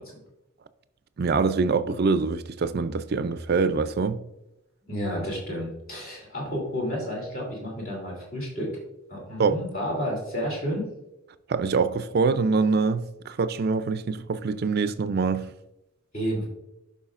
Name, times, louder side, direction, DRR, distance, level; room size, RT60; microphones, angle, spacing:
voice 1, 1.2-4.2 9.4-9.6 11.5-15.5, right 4 dB, 45° right, 0.4 m, -24 dB
voice 2, 4.9-8.7 9.1-10.9 16.1-16.5, equal, 40° left, 2.8 m, -31 dB
11.5 x 5.5 x 2.4 m
head